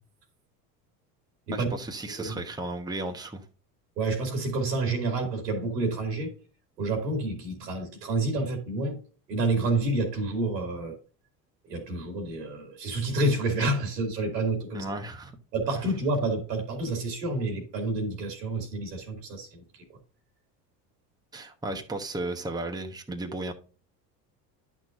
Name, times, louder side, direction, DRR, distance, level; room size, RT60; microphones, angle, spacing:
voice 1, 1.5-3.4 14.7-15.4 21.3-23.5, right 2 dB, 10° right, 1.1 m, -34 dB
voice 2, 4.0-6.3 6.8-9.0 9.3-11.0 11.7-14.8 15.5-19.6, right 2 dB, 85° right, 2.5 m, -29 dB
10.5 x 6.1 x 2.5 m
hypercardioid pair, 80°, 48 cm